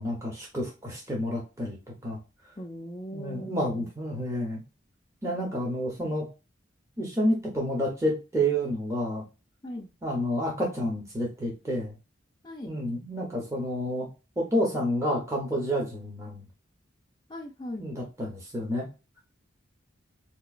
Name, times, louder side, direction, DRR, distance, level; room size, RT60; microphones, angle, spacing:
voice 1, 0.0-1.8 2.0-2.2 3.1-4.6 5.2-6.3 7.0-9.2 10.0-11.9 12.6-14.1 14.4-16.4 17.8-18.9, equal, 15° right, 0.7 m, -29 dB
voice 2, 2.6-3.9 9.6-9.9 12.4-12.8 17.3-17.9, equal, 20° left, 0.4 m, -39 dB
3.9 x 2.9 x 2.4 m
head